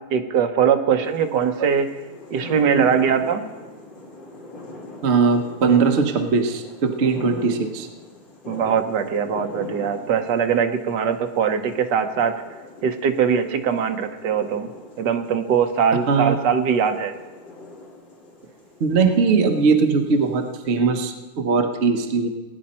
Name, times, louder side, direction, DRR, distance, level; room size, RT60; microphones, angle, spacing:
voice 1, 0.1-1.9 2.3-3.4 7.2-7.3 8.5-12.3 12.8-14.7 15.0-17.1, right 7 dB, 60° right, 6 dB, 1.4 m, -21 dB
sound 1, 1.0-20.8, left 2 dB, 60° left, 3.4 m, -42 dB
voice 2, 5.0-7.9 16.1-16.3 18.8-22.3, right 5 dB, 45° right, 4 dB, 1.0 m, -20 dB
19.0 x 10.0 x 4.3 m, 1.2 s
omnidirectional pair, 2.3 m